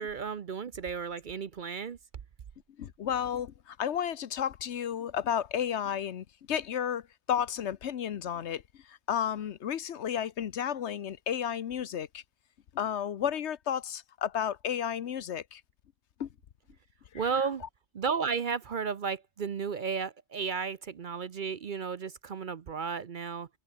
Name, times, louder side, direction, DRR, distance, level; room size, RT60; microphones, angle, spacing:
voice 1, 0.0-2.0 17.1-17.6 17.9-23.5, right 6 dB, 50° right, 0.8 m, -33 dB
voice 2, 2.8-8.6 8.9-12.2 12.7-15.6 16.2-16.3 17.1-17.2, left 9 dB, 70° left, 1.1 m, -32 dB
omnidirectional pair, 1.2 m